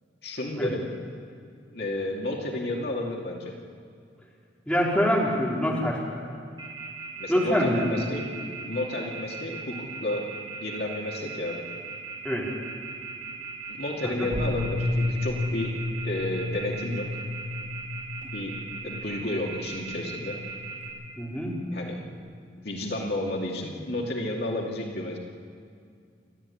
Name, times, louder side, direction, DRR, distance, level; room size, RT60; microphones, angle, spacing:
voice 1, 0.2-0.9 1.7-3.5 7.2-8.2 8.6-10.3 10.6-11.6 13.7-15.8 16.0-17.1 18.3-20.4 21.7-22.0 22.6-25.2, left 1 dB, 60° left, -1 dB, 2.6 m, -31 dB
voice 2, 4.7-6.0 7.3-8.0 12.2-12.4 14.2-14.3 21.2-21.6, equal, 5° left, -5 dB, 4.3 m, -25 dB
Telephone, 6.6-20.9, right 5 dB, 25° right, 6.6 m, -38 dB
sound 1, 14.3-22.4, left 2 dB, 50° right, 2.1 m, -33 dB
29.5 x 13.0 x 8.6 m, 2.3 s
head